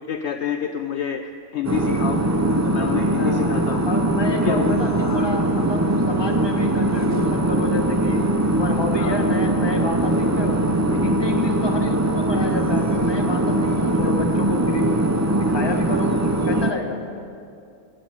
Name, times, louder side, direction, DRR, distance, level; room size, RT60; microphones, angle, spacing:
voice 1, 0.1-2.2 2.6-3.9 4.4-5.3 9.0-9.3, left 8 dB, 65° left, 7 dB, 0.8 m, -28 dB
sound 1, 1.6-16.7, right 1 dB, 25° right, 0.3 m, -21 dB
voice 2, 3.2-3.6 3.9-8.2 8.5-10.6 10.9-15.0 15.4-16.1 16.5-17.0, left 2 dB, 20° left, 3 dB, 1.2 m, -30 dB
16.5 x 9.3 x 6.8 m, 2.5 s
omnidirectional pair, 1.4 m